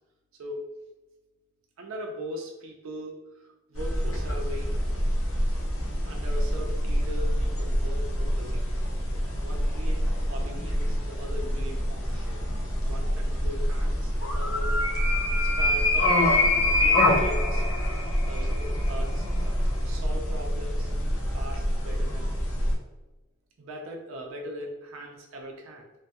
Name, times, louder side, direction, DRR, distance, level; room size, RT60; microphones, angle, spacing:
voice 1, 1.8-4.7 6.0-8.6 9.1-10.0 10.3-12.4 12.8-17.7 18.3-19.3 19.8-20.9 21.3-22.7 23.6-25.9, equal, 70° right, 1 dB, 0.5 m, -40 dB
sound 1, 3.7-22.7, left 1 dB, 75° left, 0.7 m, -26 dB
3.1 x 2.2 x 2.8 m, 1.1 s
head